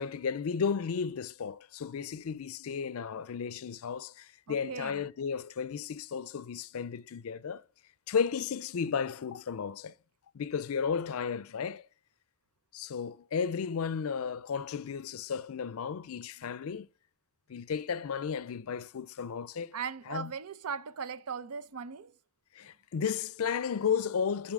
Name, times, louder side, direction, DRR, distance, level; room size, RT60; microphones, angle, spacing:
voice 1, 0.0-7.6 8.1-9.9 10.3-11.9 12.7-16.9 17.5-19.8 20.1-20.3 22.6-24.5, left 6 dB, 70° left, 0.4 m, -34 dB
voice 2, 4.5-5.0 19.7-22.1, right 6 dB, 90° right, 0.6 m, -38 dB
10.5 x 4.3 x 3.6 m
head